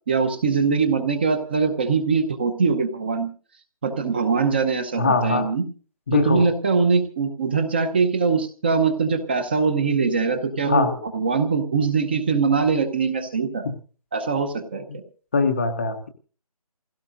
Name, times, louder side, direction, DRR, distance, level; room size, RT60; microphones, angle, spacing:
voice 1, 0.1-3.3 3.8-5.6 6.1-10.9 11.1-13.6 14.1-14.9, right 5 dB, 15° right, 9 dB, 0.8 m, -22 dB
voice 2, 5.0-5.5 6.1-6.5 10.7-10.9 15.3-16.1, left 4 dB, 20° left, 6 dB, 0.7 m, -21 dB
28.0 x 16.5 x 2.6 m, 0.39 s
figure-of-eight pair, 170°, 20 cm